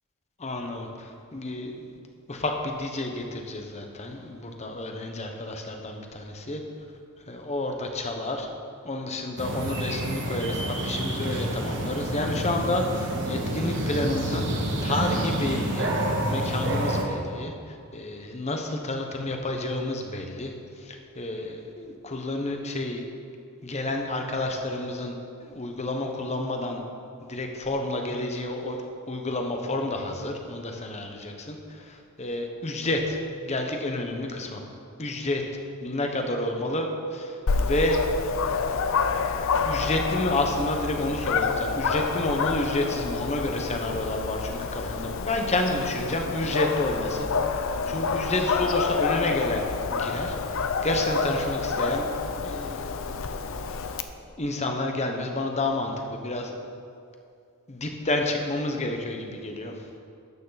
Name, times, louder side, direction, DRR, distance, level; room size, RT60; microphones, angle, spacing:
voice 1, 0.4-2.0 2.3-6.6 7.3-8.5 8.8-15.9 16.2-23.0 23.6-25.1 25.4-26.8 27.2-28.8 29.1-33.2 33.4-34.6 35.0-35.4 35.8-38.0 39.6-47.3 47.9-50.4 50.8-52.1 52.4-52.9 54.4-56.6 57.7-59.8, left 2 dB, 30° left, 3 dB, 1.1 m, -30 dB
sound 1, 9.4-17.0, right 1 dB, 55° right, 1.5 m, -28 dB
Dog, 37.5-54.0, left 5 dB, 60° left, 0.6 m, -28 dB
12.0 x 9.3 x 4.1 m, 2.4 s
head